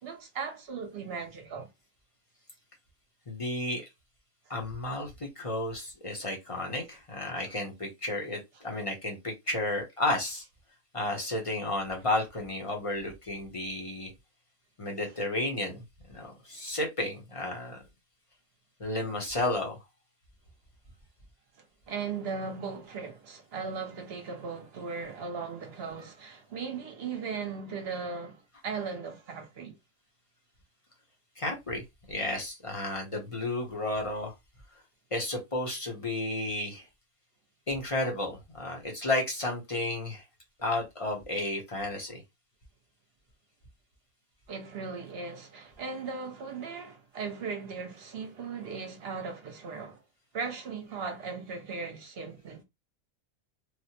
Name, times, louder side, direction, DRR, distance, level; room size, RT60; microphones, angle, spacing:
voice 1, 0.0-1.7 21.6-29.8 44.5-50.0 50.3-52.6, right 5 dB, 50° right, 0.9 m, -38 dB
voice 2, 3.3-3.9 4.5-10.5 10.9-14.1 14.8-15.8 16.1-17.8 18.8-19.8 31.4-34.3 35.1-36.9 37.7-40.2 40.6-42.2, left 2 dB, 30° left, 0.7 m, -32 dB
3.2 x 2.1 x 2.8 m
omnidirectional pair, 1.4 m